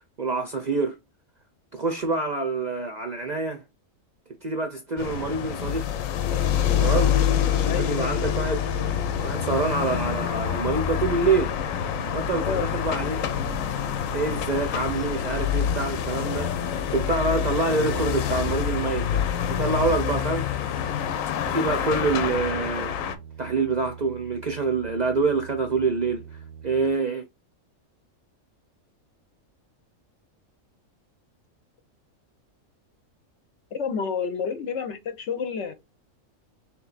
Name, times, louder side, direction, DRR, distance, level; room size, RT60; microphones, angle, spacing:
voice 1, 0.2-1.0 1.7-3.6 4.4-5.9 6.8-7.2 7.7-8.6 9.2-11.5 12.1-13.2 14.1-16.5 16.9-19.2 19.6-20.8 21.5-23.0 23.4-26.2 26.6-27.2, right 3 dB, 50° right, 0.5 m, -26 dB
sound 1, 5.0-23.2, left 9 dB, 85° left, 1.0 m, -26 dB
voice 2, 7.6-8.0 12.4-12.6 33.7-35.7, left 6 dB, 65° left, 0.9 m, -29 dB
sound 2, 8.6-19.3 21.5-26.9, right 8 dB, 85° right, 1.0 m, -43 dB
3.4 x 3.0 x 3.9 m
omnidirectional pair, 1.4 m